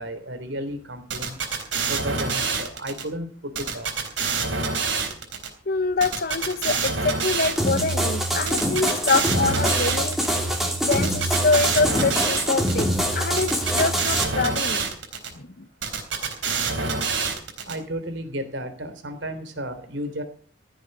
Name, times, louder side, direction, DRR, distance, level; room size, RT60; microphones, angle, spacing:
voice 1, 0.0-1.4 1.9-3.9 17.6-20.2, equal, 75° right, 3.3 m, -33 dB
sound 1, 1.1-3.0 3.5-5.5 6.0-7.9 8.5-10.4 10.9-12.8 13.4-15.3 15.8-17.7, right 4 dB, 90° right, 3.8 m, -26 dB
voice 2, 5.7-10.5 10.9-14.9 15.3-15.7, left 4 dB, 55° left, 1.0 m, -25 dB
sound 2, 7.6-14.2, right 1 dB, ahead, 3.1 m, -25 dB
16.0 x 8.2 x 7.7 m
head